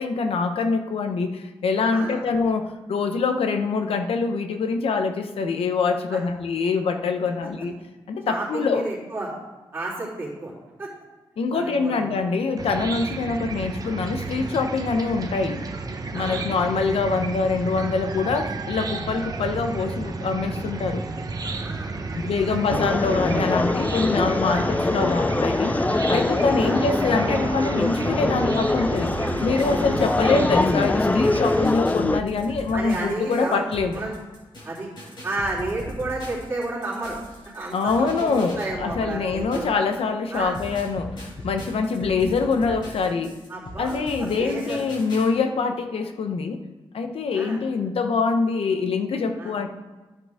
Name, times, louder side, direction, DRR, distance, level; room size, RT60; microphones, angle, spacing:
voice 1, 0.0-7.8 8.1-8.9 11.4-15.6 16.1-21.0 22.1-29.1 29.4-34.0 37.7-43.3 43.8-46.6 46.9-49.7, left 4 dB, 90° left, 6 dB, 0.8 m, -24 dB
voice 2, 1.9-2.2 6.1-6.2 7.4-7.5 8.2-9.3 9.7-10.5 10.8-10.9 11.5-12.1 16.1-16.4 21.5-22.8 23.9-24.0 24.5-24.7 26.1-26.8 32.7-33.6 33.9-34.1 34.6-34.9 35.2-37.2 37.5-39.7 40.3-40.6 43.5-44.8 47.3-47.6 49.4-49.5, right 2 dB, 25° right, -6 dB, 3.2 m, -32 dB
Chicken rooster / Cricket, 12.6-31.7, right 3 dB, 40° right, 0.8 m, -32 dB
sound 1, 22.7-32.2, left 2 dB, 15° left, 0.3 m, -23 dB
sound 2, 28.8-40.0 40.3-45.3, equal, 55° left, 3.4 m, -40 dB
11.0 x 7.7 x 3.5 m, 1.2 s
wide cardioid pair, 120°, 10 cm